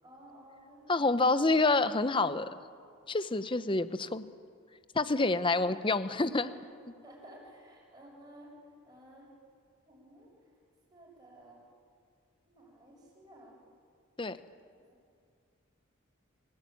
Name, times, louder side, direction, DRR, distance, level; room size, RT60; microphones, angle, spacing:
voice 1, 0.0-1.5 5.1-5.8 6.4-6.6 7.0-9.3 9.9-10.3 10.9-11.6 12.4-13.6 14.8-14.9, right 1 dB, 20° right, -3 dB, 7.1 m, -54 dB
voice 2, 0.9-2.5 3.1-4.2 4.9-6.5 14.2-14.4, left 3 dB, 25° left, 13 dB, 0.8 m, -27 dB
26.0 x 17.5 x 9.5 m, 2.2 s
head